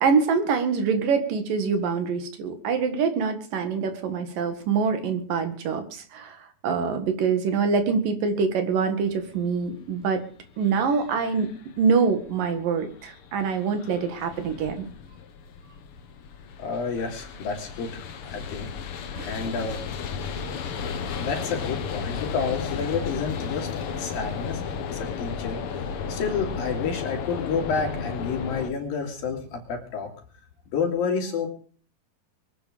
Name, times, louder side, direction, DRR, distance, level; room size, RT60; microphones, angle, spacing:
voice 1, 0.0-6.4 6.6-10.2 10.6-11.5 11.8-14.9 19.2-19.3, right 5 dB, 75° right, 8 dB, 3.6 m, -25 dB
sound 1, 9.1-28.7, left 6 dB, 60° left, 1.6 m, -34 dB
voice 2, 16.6-18.7 19.1-19.8 21.2-23.7 23.9-24.6 24.9-25.6 26.1-30.1 30.7-31.5, left 5 dB, 80° left, 3 dB, 4.8 m, -29 dB
23.5 x 9.2 x 5.2 m, 0.44 s
omnidirectional pair, 4.0 m